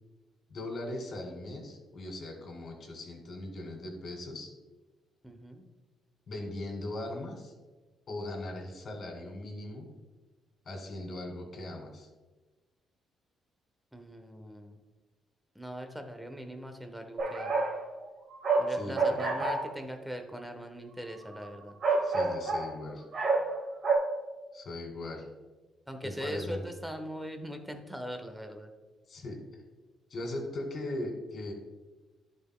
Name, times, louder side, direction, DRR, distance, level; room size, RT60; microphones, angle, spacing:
voice 1, 0.5-4.5 6.3-7.5 8.1-9.9 10.7-12.1 18.7-19.4 22.0-23.0 24.5-25.3 26.0-26.6 29.1-29.6 30.1-31.5, left 1 dB, 55° left, 1 dB, 2.2 m, -39 dB
voice 2, 5.2-5.6 13.9-14.8 15.5-17.5 18.6-21.7 25.9-28.7, equal, 5° right, 5 dB, 0.9 m, -41 dB
sound 1, 17.2-17.8 18.1-19.8 21.3-21.4 21.8-22.7 23.1-23.6 23.8-24.0, right 3 dB, 50° right, 1.6 m, -28 dB
11.0 x 5.1 x 2.2 m, 1.2 s
cardioid pair, 90°, 0 cm